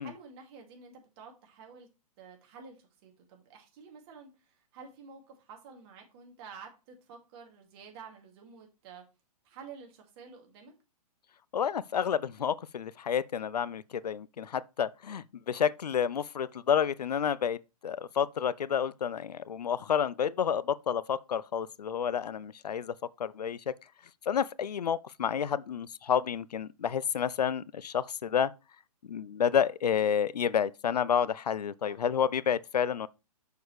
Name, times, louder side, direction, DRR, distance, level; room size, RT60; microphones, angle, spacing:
voice 1, 0.0-1.9 2.2-9.0 9.4-10.7 31.8-32.0, right 5 dB, 40° right, 2.4 m, -50 dB
voice 2, 11.5-22.9 23.2-23.7 24.3-28.5 29.0-33.1, left 8 dB, 85° left, 0.5 m, -30 dB
6.8 x 6.4 x 3.2 m
hypercardioid pair, 130°, 20 cm